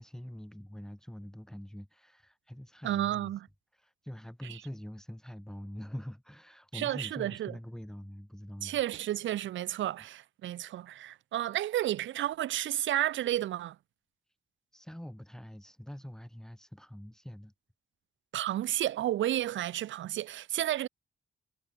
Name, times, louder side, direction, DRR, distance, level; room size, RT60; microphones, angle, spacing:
voice 1, 0.0-3.3 3.7-8.8 14.7-17.5, equal, 5° left, 3.0 m, -44 dB
voice 2, 2.8-3.5 4.4-4.6 6.7-7.5 8.6-13.8 18.3-20.9, right 13 dB, 75° right, 0.4 m, -32 dB
wide cardioid pair, 155°, 20 cm